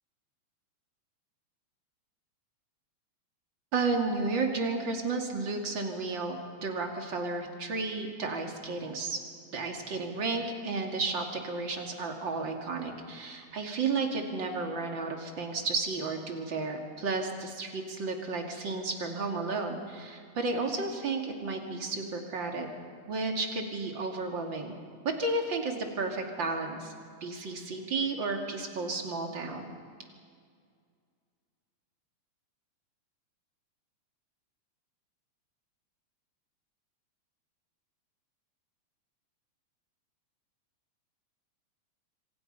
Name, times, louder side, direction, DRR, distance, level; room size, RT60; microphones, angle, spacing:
voice 1, 3.7-9.2 9.5-22.7 23.1-24.7 25.0-26.9 27.2-29.7, right 3 dB, 40° right, 2 dB, 2.9 m, -32 dB
27.0 x 25.0 x 5.5 m, 2.1 s
omnidirectional pair, 3.3 m